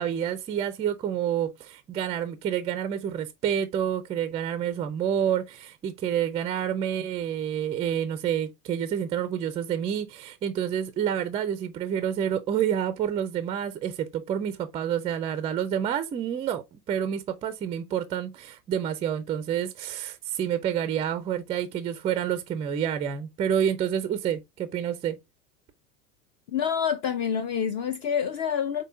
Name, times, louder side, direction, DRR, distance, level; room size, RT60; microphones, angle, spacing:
voice 1, 0.0-25.2, right 9 dB, 15° right, 0.3 m, -28 dB
voice 2, 26.5-28.8, left 8 dB, 40° left, 0.5 m, -27 dB
5.3 x 3.8 x 2.4 m
hypercardioid pair, 85°, 42 cm